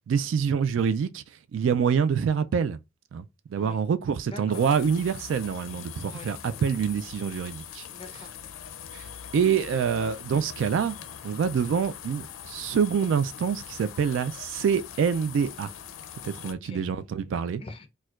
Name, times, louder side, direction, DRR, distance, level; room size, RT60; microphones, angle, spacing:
voice 1, 0.1-1.2 1.5-2.8 3.1-3.3 3.5-7.8 8.9-9.0 9.3-11.0 11.2-15.7 16.2-17.6, right 6 dB, 70° right, 0.3 m, -26 dB
voice 2, 4.2-4.6 6.1-6.3 7.9-8.3 16.4-16.8 17.6-17.9, left 3 dB, 30° left, 0.5 m, -44 dB
sound 1, 4.5-16.5, left 9 dB, 85° left, 0.4 m, -42 dB
4.3 x 2.2 x 2.4 m
head